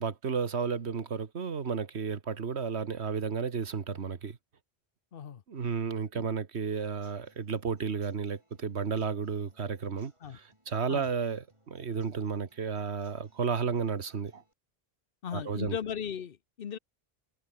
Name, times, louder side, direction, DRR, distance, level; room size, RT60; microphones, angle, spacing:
voice 1, 0.0-4.4 5.5-14.4 15.3-15.8, right 6 dB, 80° right, 1.7 m, -32 dB
voice 2, 5.1-5.4 6.1-6.3 10.2-10.4 10.9-11.1 15.2-16.8, left 8 dB, 60° left, 1.0 m, -37 dB
Human voice / Acoustic guitar / Drum, 6.5-14.5, right 1 dB, 25° right, 7.6 m, -68 dB
omnidirectional pair, 1.1 m